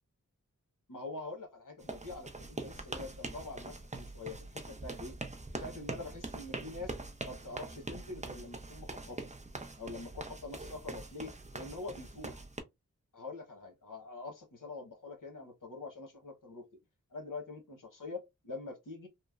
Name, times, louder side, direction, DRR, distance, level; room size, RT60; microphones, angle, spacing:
voice 1, 0.9-5.2 5.5-6.9 7.2-9.3 9.8-12.4 13.1-16.7 17.1-19.1, left 3 dB, 80° left, 1.0 m, -45 dB
sound 1, 1.8-12.6, right 2 dB, 25° right, 0.5 m, -43 dB
3.0 x 2.1 x 2.3 m
wide cardioid pair, 55°, 32 cm